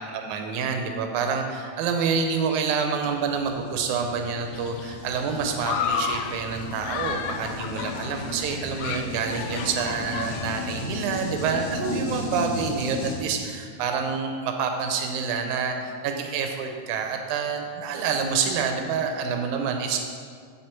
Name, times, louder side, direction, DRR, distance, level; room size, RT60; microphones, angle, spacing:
voice 1, 0.1-20.0, right 5 dB, 90° right, 4 dB, 2.1 m, -27 dB
sound 1, 2.9-13.1, left 2 dB, 50° left, 2.6 m, -35 dB
Human group actions, 4.5-11.1, left 7 dB, 80° left, 1.4 m, -33 dB
7.7 x 7.4 x 4.4 m, 2.1 s
omnidirectional pair, 3.4 m